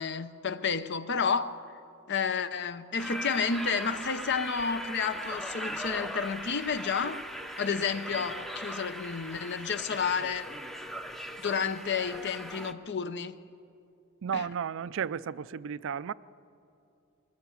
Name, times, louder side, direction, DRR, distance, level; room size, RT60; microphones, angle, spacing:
voice 1, 0.0-1.6 2.1-7.2 7.6-10.5 11.4-13.4 14.3-14.5, left 6 dB, 55° left, 0.7 m, -31 dB
sound 1, 3.0-12.7, equal, ahead, 0.6 m, -39 dB
voice 2, 14.2-16.1, right 7 dB, 60° right, 0.4 m, -33 dB
21.0 x 19.5 x 7.2 m
head